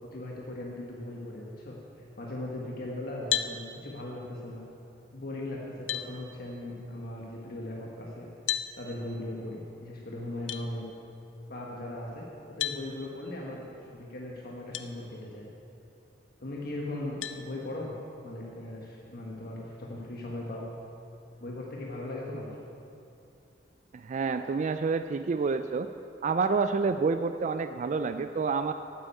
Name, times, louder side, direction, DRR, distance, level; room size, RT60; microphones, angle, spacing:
voice 1, 0.1-1.8 2.2-4.6 5.1-8.3 8.8-10.9 11.5-15.5 16.4-17.9 18.2-20.7 21.4-22.5, left 1 dB, 55° left, -3 dB, 1.5 m, -38 dB
sound 1, 3.3-3.6 5.2-5.3 5.9-6.1 8.5-8.7 10.5-10.6 12.6-12.8 14.7-14.9 15.5-15.6 17.2-17.4, left 11 dB, 85° left, 0.6 m, -31 dB
voice 2, 23.9-25.9 26.2-28.7, right 4 dB, 40° right, 9 dB, 0.3 m, -28 dB
8.9 x 8.9 x 8.4 m, 2.6 s
head